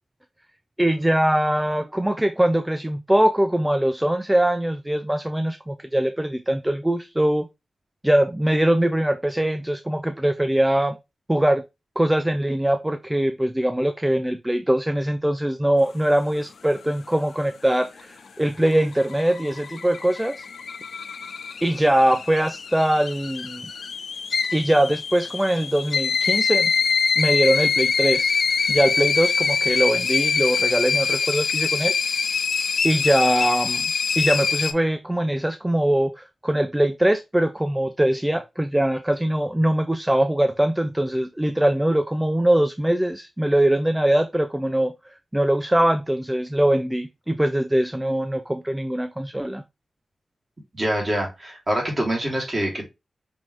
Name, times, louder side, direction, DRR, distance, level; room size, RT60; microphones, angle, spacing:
voice 1, 0.8-7.5 8.0-11.0 11.3-11.6 12.0-20.5 21.6-23.6 24.5-26.7 27.2-28.3 28.7-31.9 32.8-44.9 45.3-49.6, right 1 dB, 10° right, 0.4 m, -22 dB
sound 1, 18.5-34.7, left 5 dB, 80° left, 0.4 m, -24 dB
voice 2, 50.8-52.9, right 1 dB, 30° right, 2.6 m, -25 dB
5.4 x 3.2 x 3.0 m
wide cardioid pair, 90°, 0 cm